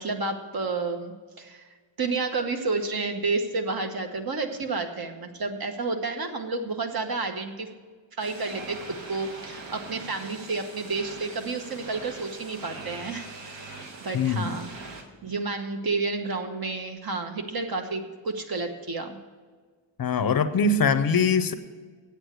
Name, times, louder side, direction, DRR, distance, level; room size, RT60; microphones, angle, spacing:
voice 1, 0.0-1.7 2.0-7.7 8.2-8.8 9.1-14.7 15.2-19.2, right 3 dB, 50° right, 5 dB, 1.1 m, -30 dB
sound 1, 8.2-15.0, right 3 dB, 65° right, 1.5 m, -42 dB
voice 2, 14.1-14.6 20.0-21.5, left 4 dB, 50° left, 11 dB, 0.6 m, -22 dB
8.5 x 8.0 x 8.1 m, 1.5 s
wide cardioid pair, 165°, 47 cm